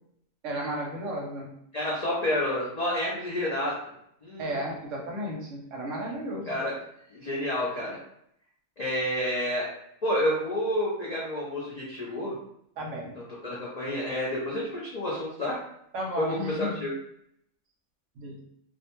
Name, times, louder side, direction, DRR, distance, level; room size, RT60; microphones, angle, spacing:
voice 1, 0.4-1.5 4.4-6.6 12.8-13.2 15.9-16.8 18.2-18.4, equal, 65° right, -1 dB, 0.9 m, -33 dB
voice 2, 1.7-3.7 4.2-4.6 6.5-6.7 7.1-8.0 8.8-9.7 10.0-12.4 13.2-15.6 16.2-16.9, left 1 dB, 85° left, -5 dB, 0.3 m, -29 dB
2.5 x 2.1 x 2.9 m, 0.73 s
omnidirectional pair, 1.4 m